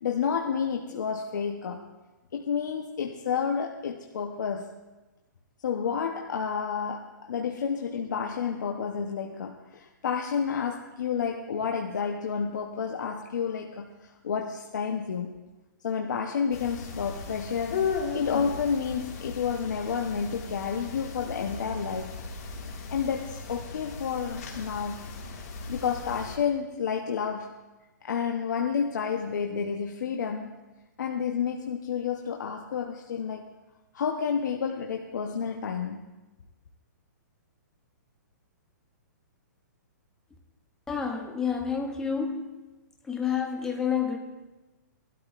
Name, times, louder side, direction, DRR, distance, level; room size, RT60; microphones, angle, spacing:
voice 1, 0.0-1.8 2.3-4.7 5.6-15.4 15.8-17.8 18.1-22.1 22.9-25.1 25.7-27.5 28.0-30.6 31.0-33.5 33.9-36.1, left 6 dB, 70° left, 2 dB, 0.9 m, -30 dB
sound 1, 16.5-26.4, left 5 dB, 50° left, 1.9 m, -36 dB
voice 2, 40.9-42.5 43.1-44.2, left 7 dB, 5° left, 2 dB, 0.7 m, -29 dB
19.0 x 12.5 x 2.5 m, 1.1 s
hypercardioid pair, 175°, 10 cm